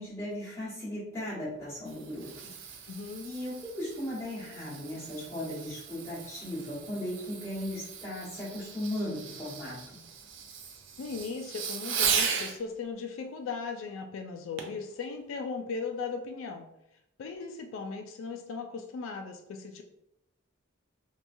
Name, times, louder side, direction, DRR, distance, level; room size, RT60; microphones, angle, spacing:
voice 1, 0.0-2.3 3.2-10.0, left 1 dB, 15° left, -10 dB, 1.2 m, -37 dB
Fireworks, 1.6-12.6 14.6-14.9 15.4-15.5, right 6 dB, 70° right, 0.4 m, -37 dB
voice 2, 2.9-3.3 11.0-16.7 17.2-19.8, left 4 dB, 80° left, 5 dB, 0.3 m, -37 dB
2.9 x 2.3 x 2.5 m, 0.81 s
head